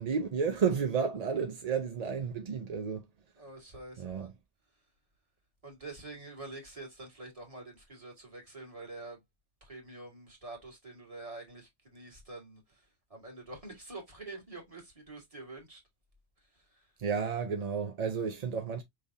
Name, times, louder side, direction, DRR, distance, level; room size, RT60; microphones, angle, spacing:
voice 1, 0.0-3.0 4.0-4.3 17.0-18.8, right 6 dB, 45° right, 0.6 m, -32 dB
voice 2, 3.4-4.3 5.6-9.2 9.6-12.6 13.1-15.8, right 2 dB, 30° right, 2.0 m, -46 dB
5.4 x 3.4 x 2.6 m
omnidirectional pair, 1.2 m